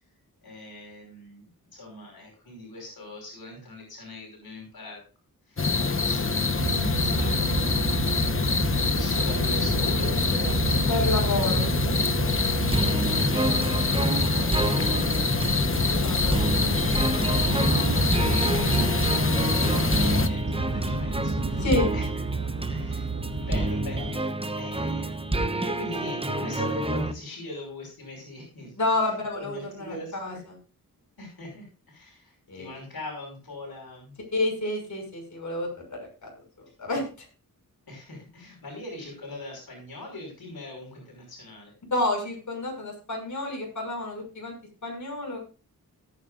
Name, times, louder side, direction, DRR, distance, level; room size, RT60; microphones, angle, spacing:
voice 1, 0.4-5.0 5.5-7.6 8.1-10.9 14.3-15.7 17.6-21.7 21.9-22.1 22.7-24.3 24.5-28.7 29.4-30.4 31.2-34.1 37.9-41.7, left 2 dB, 75° left, 0 dB, 5.6 m, -41 dB
sound 1, 5.6-20.3, left 4 dB, 35° left, 1.0 m, -25 dB
sound 2, 6.6-24.1, right 3 dB, 45° right, 2.9 m, -30 dB
voice 2, 10.9-11.7 12.2-12.6 15.4-16.7 21.6-21.9 28.8-29.9 30.2-30.3 32.5-32.7 34.3-36.3 36.8-37.0 41.9-44.5 44.8-45.4, left 2 dB, 55° left, 0 dB, 6.1 m, -29 dB
sound 3, 12.7-27.1, right 2 dB, 15° right, 1.0 m, -29 dB
17.5 x 9.3 x 2.5 m, 0.34 s
wide cardioid pair, 85°, 36 cm